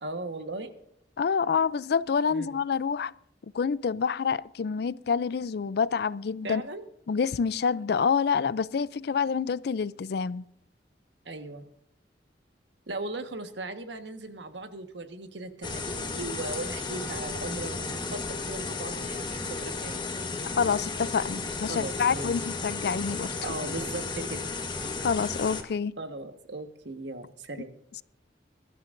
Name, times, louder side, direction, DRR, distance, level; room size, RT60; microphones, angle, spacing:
voice 1, 0.0-0.7 2.3-2.5 6.4-6.8 11.2-11.6 12.9-20.0 21.7-22.3 23.4-24.4 26.0-27.7, right 2 dB, 80° right, 1.4 m, -38 dB
voice 2, 1.2-3.1 3.5-6.6 7.1-10.4 20.6-23.3 25.0-25.9, left 6 dB, 60° left, 0.4 m, -27 dB
sound 1, 15.6-25.6, left 3 dB, 25° left, 1.4 m, -34 dB
22.5 x 12.5 x 2.6 m
head